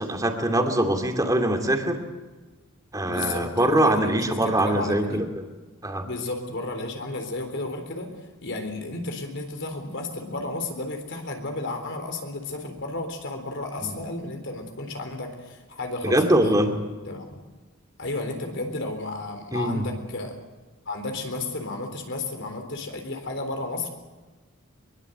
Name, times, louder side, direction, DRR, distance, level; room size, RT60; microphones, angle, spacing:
voice 1, 0.0-2.0 2.9-5.2 5.8-6.1 13.8-14.0 16.0-16.8 19.5-19.9, right 1 dB, 15° right, 4 dB, 2.7 m, -23 dB
voice 2, 3.0-4.2 4.6-5.2 6.0-8.1 8.4-16.5 17.1-17.2 18.0-20.4 20.9-23.9, left 2 dB, 60° left, 5 dB, 4.0 m, -32 dB
23.0 x 23.0 x 8.1 m, 1.2 s
head